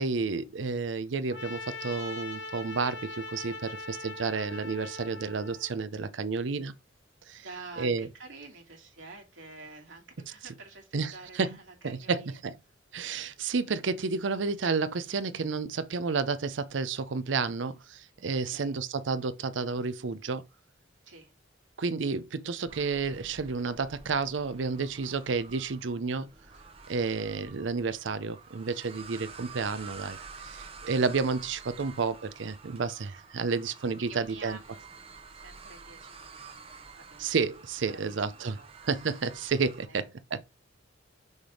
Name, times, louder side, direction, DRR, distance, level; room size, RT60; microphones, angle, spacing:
voice 1, 0.0-6.7 7.3-7.4 7.8-8.1 10.9-11.6 11.8-12.6 12.9-20.4 21.8-26.3 26.9-34.6 37.2-38.6 38.9-40.4, right 4 dB, 75° right, 0.6 m, -31 dB
Trumpet, 1.3-5.7, left 2 dB, 65° left, 1.3 m, -41 dB
voice 2, 7.4-12.4 18.5-18.7 21.0-21.3 31.8-31.9 34.0-34.9 35.4-37.3 37.9-38.0 38.4-38.7 39.9-40.0, right 3 dB, 90° right, 2.3 m, -48 dB
sound 1, 22.7-39.9, right 4 dB, 30° right, 0.8 m, -49 dB
6.3 x 3.5 x 4.8 m
head